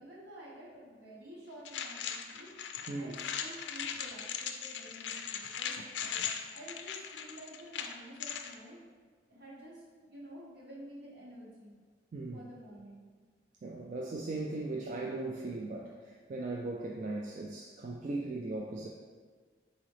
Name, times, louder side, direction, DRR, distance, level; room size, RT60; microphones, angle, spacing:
voice 1, 0.0-8.8 9.3-11.8 12.3-13.0, right 1 dB, 70° right, -7 dB, 1.4 m, -50 dB
sound 1, 1.6-8.5, left 7 dB, 85° left, 0.3 m, -39 dB
voice 2, 13.6-18.9, right 2 dB, 45° right, -1 dB, 0.3 m, -38 dB
4.0 x 3.7 x 3.2 m, 1.5 s
head